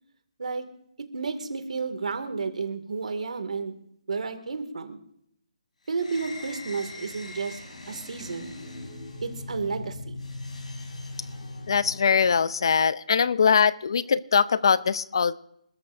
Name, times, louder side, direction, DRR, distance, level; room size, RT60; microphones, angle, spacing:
voice 1, 1.1-3.7 4.1-5.0 5.9-7.6 7.9-8.5 9.2-10.2, right 4 dB, 75° right, 7 dB, 2.2 m, -31 dB
sound 1, 5.9-12.5, left 2 dB, 75° left, 5.5 m, -40 dB
voice 2, 11.7-15.4, left 6 dB, 40° left, 19 dB, 0.5 m, -22 dB
27.0 x 13.5 x 2.6 m, 0.74 s
hypercardioid pair, 180°, 4 cm